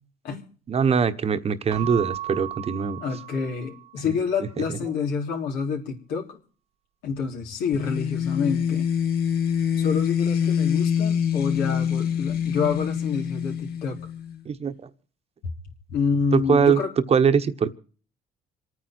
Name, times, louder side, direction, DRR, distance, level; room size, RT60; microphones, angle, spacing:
voice 1, 0.7-3.0 14.4-14.7 16.3-16.8 17.1-17.7, right 6 dB, 35° right, 10 dB, 1.2 m, -22 dB
Keyboard (musical) / Bell, 1.7-4.1, right 13 dB, 85° right, 1.9 m, -36 dB
voice 2, 3.0-6.4 7.0-8.9 9.7-14.0 15.9-16.9, left 5 dB, 90° left, 0 dB, 3.7 m, -28 dB
sound 1, 7.7-14.4, left 8 dB, 70° left, 1.6 m, -25 dB
27.5 x 9.5 x 4.5 m, 0.41 s
cardioid pair, 110°, 17 cm